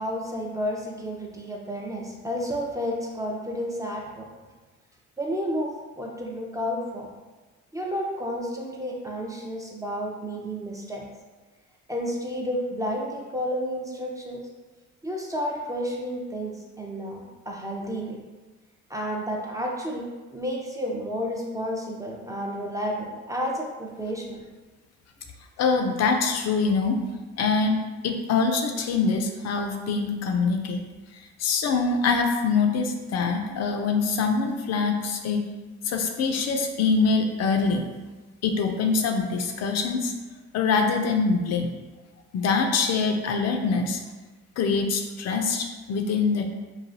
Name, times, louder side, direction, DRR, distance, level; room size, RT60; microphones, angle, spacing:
voice 1, 0.0-4.3 5.2-7.1 7.7-11.0 11.9-14.4 15.0-18.2 18.9-20.1 20.3-24.4, equal, 10° right, -2 dB, 0.4 m, -31 dB
voice 2, 25.6-27.0 27.4-30.8 31.4-35.5 35.8-37.9 38.4-40.1 40.5-41.7 42.3-44.0 44.6-46.4, left 4 dB, 60° left, 4 dB, 0.4 m, -24 dB
3.1 x 2.3 x 2.5 m, 1.2 s
cardioid pair, 90°, 30 cm